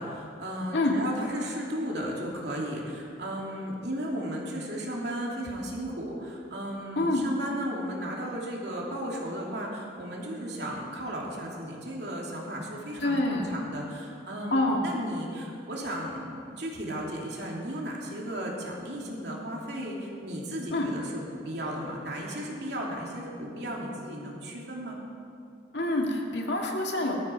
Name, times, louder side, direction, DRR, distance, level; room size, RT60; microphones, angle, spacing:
voice 1, 0.0-25.0, right 1 dB, 60° right, -2 dB, 2.9 m, -35 dB
voice 2, 7.0-7.3 13.0-13.5 14.5-14.8 20.7-20.9 25.7-27.1, left 1 dB, 65° left, 0 dB, 2.0 m, -26 dB
18.5 x 13.0 x 4.6 m, 2.4 s
head